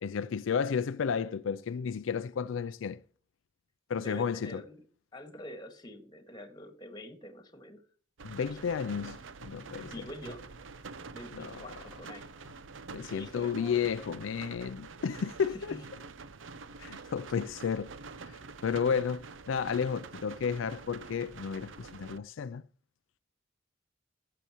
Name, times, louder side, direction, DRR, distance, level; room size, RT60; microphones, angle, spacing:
voice 1, 0.0-3.0 3.9-4.6 8.2-10.1 11.3-11.8 12.9-15.8 16.8-17.9 18.3-22.6, left 6 dB, 80° left, 0.4 m, -32 dB
voice 2, 3.9-4.8 5.1-7.8 9.8-10.5 11.1-12.3 13.1-13.8 15.7-15.8 16.9-17.1, left 1 dB, 20° left, 1.8 m, -46 dB
sound 1, 8.2-22.2, right 4 dB, 80° right, 0.7 m, -47 dB
15.0 x 6.8 x 3.0 m
head